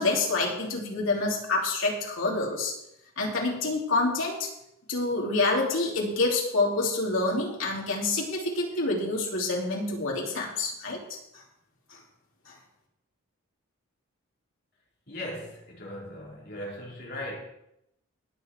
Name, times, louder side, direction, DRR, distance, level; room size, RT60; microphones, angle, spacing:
voice 1, 0.0-2.7 3.2-4.5 4.9-11.2 11.9-12.0 12.5-12.6, left 2 dB, 70° left, -2 dB, 3.3 m, -27 dB
voice 2, 15.1-17.4, left 1 dB, 50° left, -4 dB, 4.3 m, -38 dB
18.5 x 7.2 x 4.7 m, 0.81 s
head